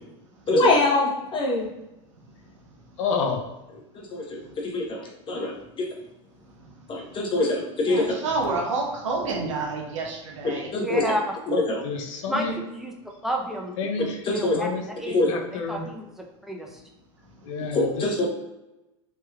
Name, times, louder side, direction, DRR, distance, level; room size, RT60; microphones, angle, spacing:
voice 1, 0.5-1.7 4.0-5.9 6.9-8.1 10.4-11.0 11.5-11.8 14.2-14.6 15.1-15.3 17.7-18.3, left 2 dB, 30° left, -1 dB, 0.9 m, -24 dB
voice 2, 3.0-3.4 11.8-12.5 13.8-14.2 14.5-14.8 15.3-15.8 17.4-17.9, left 5 dB, 80° left, 4 dB, 0.5 m, -28 dB
voice 3, 7.8-10.7 17.2-17.3, right 3 dB, 90° right, 0 dB, 0.8 m, -29 dB
voice 4, 10.7-11.4 12.3-12.9 13.2-13.7 14.3-15.2 15.5-16.0 16.4-16.8, equal, ahead, 0 dB, 0.5 m, -30 dB
3.3 x 2.9 x 2.3 m, 0.96 s
supercardioid pair, 105°, 16 cm